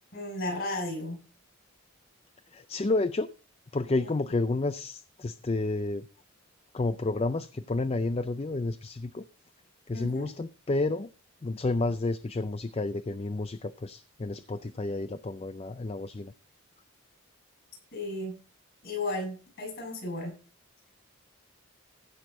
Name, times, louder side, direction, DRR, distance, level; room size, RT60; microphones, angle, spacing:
voice 1, 0.1-1.2 4.0-4.1 9.9-10.3 17.9-18.3 18.8-20.4, left 2 dB, 45° left, 3 dB, 6.5 m, -34 dB
voice 2, 2.5-3.3 3.7-6.1 6.7-9.2 9.9-11.1 11.4-16.3, left 2 dB, 25° left, 12 dB, 0.4 m, -30 dB
15.5 x 6.7 x 4.1 m, 0.36 s
head